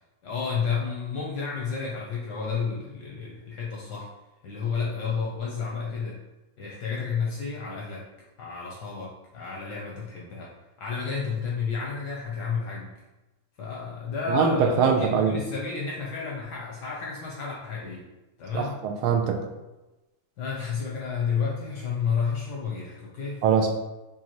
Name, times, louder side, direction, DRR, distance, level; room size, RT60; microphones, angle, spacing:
voice 1, 0.2-4.1 4.4-6.2 6.6-8.1 8.4-12.9 13.6-18.1 18.4-18.8 20.4-23.4, left 5 dB, 70° left, -3 dB, 1.0 m, -31 dB
voice 2, 14.3-15.3 18.5-19.4 23.4-23.7, right 6 dB, 85° right, 3 dB, 1.5 m, -22 dB
5.4 x 2.6 x 2.9 m, 1.0 s
omnidirectional pair, 2.3 m